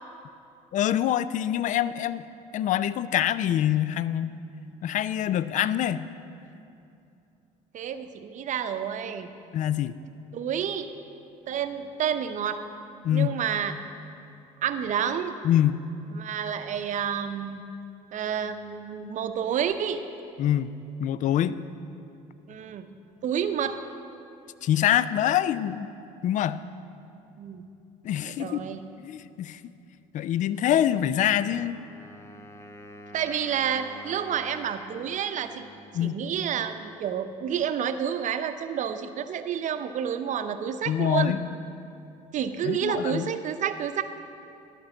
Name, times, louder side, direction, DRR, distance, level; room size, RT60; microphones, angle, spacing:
voice 1, 0.7-2.2 2.5-4.3 4.8-6.1 9.5-9.9 13.0-13.4 15.4-15.8 20.4-20.7 21.0-21.6 24.6-25.9 26.2-26.6 28.0-28.6 29.0-29.6 30.1-31.8 35.9-36.2 40.9-41.5 42.6-43.3, left 11 dB, 50° left, 16 dB, 0.4 m, -25 dB
voice 2, 7.7-9.3 10.3-10.9 11.5-12.6 13.1-13.7 14.6-15.3 16.1-17.6 18.1-20.0 22.5-22.9 23.2-23.8 27.4-27.7 28.2-28.8 33.1-35.6 36.0-41.4 42.3-44.0, right 8 dB, 50° right, 9 dB, 0.7 m, -29 dB
Wind instrument woodwind instrument, 31.3-37.0, left 1 dB, 15° left, 0.8 m, -48 dB
11.5 x 5.3 x 7.0 m, 2.7 s
supercardioid pair, 80°, 17 cm